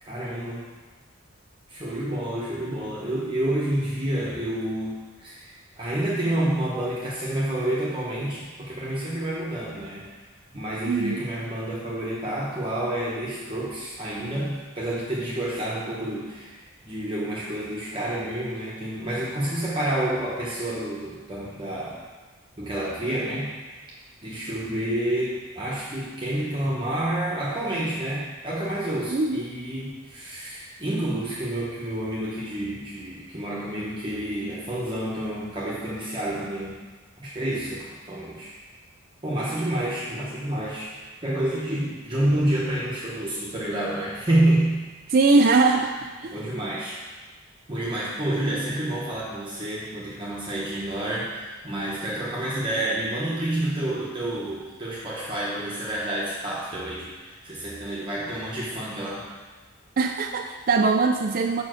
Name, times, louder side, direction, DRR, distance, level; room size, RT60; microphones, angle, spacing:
voice 1, 0.0-0.7 1.7-10.1 10.5-16.6 16.8-22.0 22.6-23.5 24.2-36.8 37.2-38.5 39.2-40.9 41.2-44.8 46.3-47.0 47.7-59.2, right 1 dB, 25° right, -6 dB, 1.1 m, -29 dB
voice 2, 10.9-11.2 29.1-29.4 45.1-46.4 60.0-61.6, right 3 dB, 45° right, 3 dB, 0.4 m, -21 dB
7.3 x 5.4 x 6.3 m, 1.3 s
head